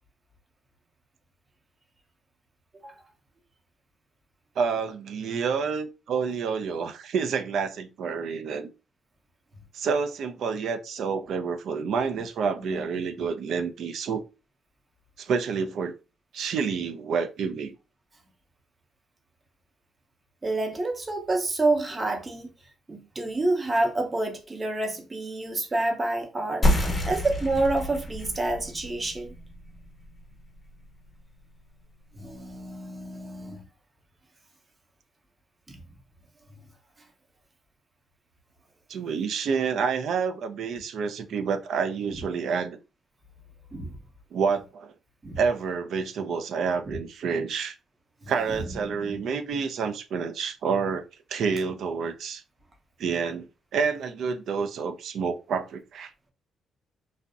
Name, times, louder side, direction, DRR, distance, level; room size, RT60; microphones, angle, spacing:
voice 1, 4.6-8.7 9.7-14.2 15.2-15.9 16.3-17.7 38.9-42.8 44.3-44.9 45.4-47.8 48.3-51.0 51.3-52.4 53.0-53.5 53.7-56.1, right 5 dB, 70° right, 0.3 m, -28 dB
voice 2, 20.4-22.5 22.9-29.3 32.1-33.6 35.7-35.8 43.7-43.9 45.2-45.4 46.9-47.0 48.2-48.3 48.6-49.2, right 2 dB, 25° right, 0.6 m, -28 dB
sound 1, 26.6-31.7, left 1 dB, 25° left, 0.6 m, -29 dB
2.6 x 2.0 x 2.4 m
cardioid pair, 90°, 0 cm